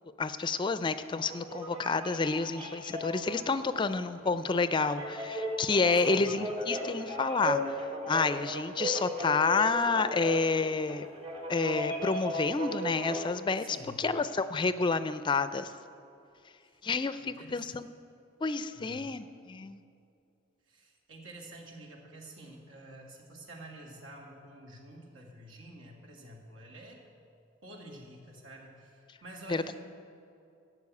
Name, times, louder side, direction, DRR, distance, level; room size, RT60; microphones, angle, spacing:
voice 1, 0.2-7.6 8.1-11.1 11.5-15.7 16.8-17.9 18.4-19.8 29.5-29.6, left 4 dB, 25° left, 12 dB, 0.4 m, -29 dB
sound 1, 1.2-13.3, equal, 30° right, 1.2 m, -37 dB
voice 2, 5.9-6.3 13.6-14.1 16.6-16.7 17.2-17.7 18.7-19.1 20.7-27.0 27.6-29.8, right 1 dB, 85° right, 0 dB, 2.2 m, -49 dB
13.0 x 7.0 x 8.4 m, 2.6 s
head